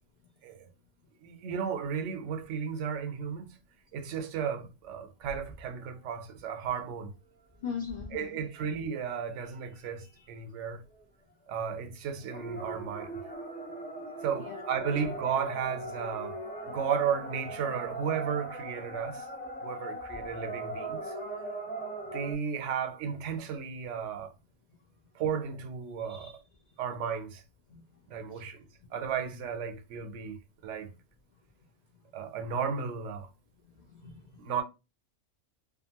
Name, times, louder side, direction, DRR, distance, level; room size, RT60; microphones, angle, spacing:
voice 1, 1.2-3.5 3.9-7.1 8.1-10.8 11.5-13.2 14.2-16.4 16.6-19.3 19.6-21.1 22.1-24.3 25.1-26.4 26.8-27.4 28.1-28.6 28.9-30.4 30.6-30.9 32.1-33.3 34.4-34.6, right 7 dB, 80° right, 0.9 m, -34 dB
sound 1, 5.2-5.6 6.7-6.8 7.8-8.2 8.5-8.8 9.6-9.7 10.2-10.3 10.9-11.0 12.2-22.3, right 1 dB, 10° left, 0.5 m, -40 dB
voice 2, 7.6-8.4 14.4-14.7 26.0-26.3 27.7-27.8 28.3-28.5 33.6-34.3, left 7 dB, 55° left, 0.5 m, -40 dB
2.5 x 2.4 x 2.8 m
omnidirectional pair, 1.3 m